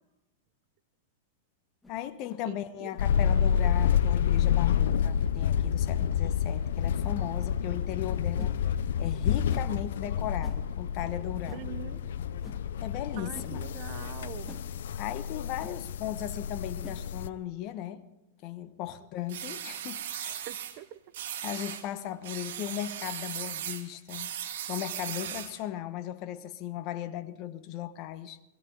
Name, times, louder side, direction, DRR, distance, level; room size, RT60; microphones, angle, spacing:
sound 1, 1.8-2.0 2.9-3.1 3.8-3.9 4.9-5.0 6.0-6.1 7.0-7.2 8.4-8.6 9.5-9.7 10.4-10.6 11.5-11.6 12.4-12.6 13.3-13.5 14.5-14.7 15.6-15.8 16.8-17.0, left 1 dB, 5° left, 1.5 m, -47 dB
voice 1, 1.9-8.6 9.0-11.7 12.8-13.6 15.0-18.0 18.4-20.5 21.4-24.3 24.7-28.4, left 12 dB, 40° left, 1.1 m, -37 dB
voice 2, 2.4-2.9 11.5-12.0 13.2-14.6 20.5-21.0, right 13 dB, 45° right, 1.0 m, -43 dB
sound 2, 3.0-17.3, left 8 dB, 75° left, 0.7 m, -29 dB
sound 3, 19.3-20.8 21.1-21.9 22.2-25.6, right 10 dB, 70° right, 2.2 m, -37 dB
22.0 x 16.5 x 3.9 m
hypercardioid pair, 140°, 0 cm